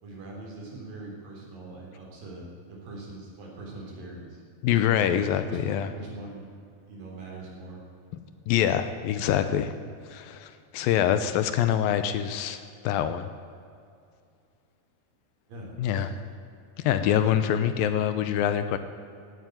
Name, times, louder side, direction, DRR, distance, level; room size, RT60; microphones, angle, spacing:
voice 1, 0.0-4.4 5.4-6.5 6.9-7.8 15.5-16.2, right 2 dB, 65° right, -1 dB, 5.1 m, -42 dB
voice 2, 4.6-5.9 8.5-9.7 10.1-13.3 15.8-16.1 16.8-18.8, left 10 dB, 80° left, 10 dB, 2.4 m, -25 dB
16.5 x 9.3 x 9.1 m, 2.4 s
omnidirectional pair, 4.4 m